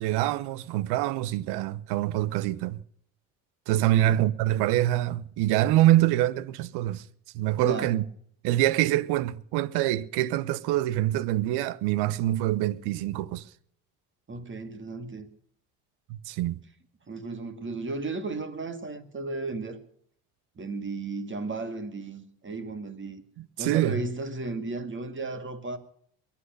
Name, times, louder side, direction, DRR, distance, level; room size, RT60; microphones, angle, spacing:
voice 1, 0.0-2.8 3.7-7.0 7.3-8.0 8.4-13.5 16.1-16.6 23.4-24.0, right 14 dB, 75° right, 0.9 m, -25 dB
voice 2, 3.7-4.2 7.6-7.9 14.3-15.3 17.1-19.8 20.6-23.2 23.6-25.8, right 3 dB, 30° right, 2.2 m, -35 dB
22.0 x 8.7 x 6.5 m
supercardioid pair, 70°, 40 cm